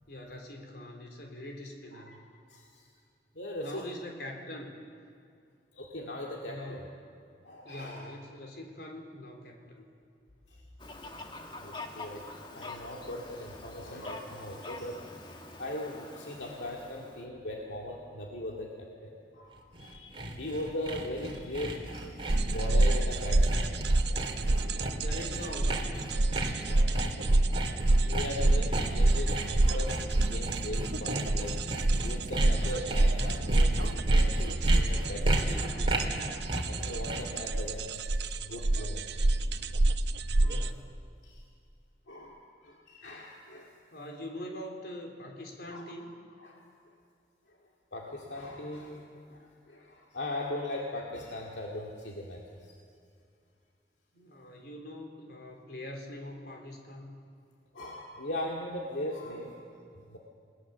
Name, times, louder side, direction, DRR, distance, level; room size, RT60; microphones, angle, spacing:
voice 1, 0.1-2.2 3.6-4.8 6.5-6.9 7.6-9.9 21.3-21.5 25.0-26.2 40.4-40.9 43.9-46.1 54.1-57.2, left 1 dB, 65° left, 2 dB, 3.8 m, -43 dB
voice 2, 2.5-2.9 3.3-3.9 5.7-6.9 7.4-8.1 10.5-10.6 11.2-11.3 11.6-12.3 12.5-15.3 15.6-24.0 24.4-24.5 26.5-27.0 28.0-31.7 32.0-36.0 36.6-38.0 38.4-39.3 39.6-39.8 40.4-40.6 41.2-41.4 42.1-43.8 45.7-45.9 46.4-46.6 47.5-47.6 47.9-52.7 57.7-59.6 60.1-60.2, left 1 dB, 85° left, -2 dB, 2.3 m, -40 dB
Fowl, 10.8-17.3, left 2 dB, 25° left, 1.6 m, -45 dB
Sawing, 19.6-37.4, right 1 dB, 30° right, 2.8 m, -35 dB
sound 1, 22.3-40.7, right 2 dB, 75° right, 0.8 m, -27 dB
28.5 x 18.5 x 7.2 m, 2.4 s
head